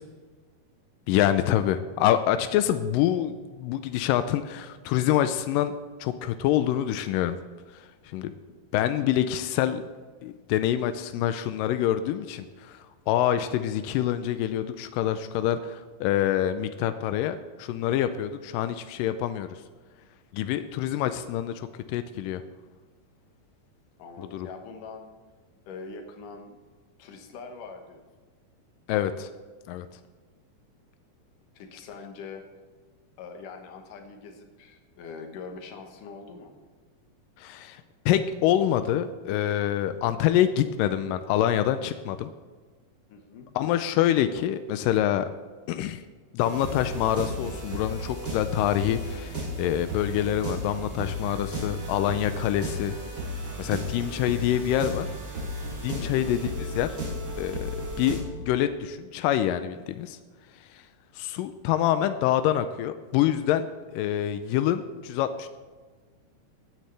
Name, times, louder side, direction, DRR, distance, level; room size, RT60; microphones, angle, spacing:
voice 1, 1.1-5.7 6.0-7.4 7.7-8.3 8.7-9.8 10.2-19.6 20.3-22.4 24.3-24.5 28.9-29.3 29.7-29.9 37.4-42.3 43.6-45.3 45.7-46.0 46.3-52.9 53.6-55.1 55.7-57.0 57.4-57.7 58.0-60.2 61.2-63.7 63.9-65.5, left 11 dB, 85° left, 10 dB, 1.9 m, -26 dB
voice 2, 24.0-25.1 25.6-26.6 27.0-28.0 31.5-32.5 33.2-36.5 43.1-43.5 56.0-56.3, left 4 dB, 65° left, 4 dB, 2.6 m, -43 dB
sound 1, 46.4-58.2, equal, 30° right, 3.3 m, -34 dB
16.5 x 9.3 x 3.4 m, 1.4 s
omnidirectional pair, 4.4 m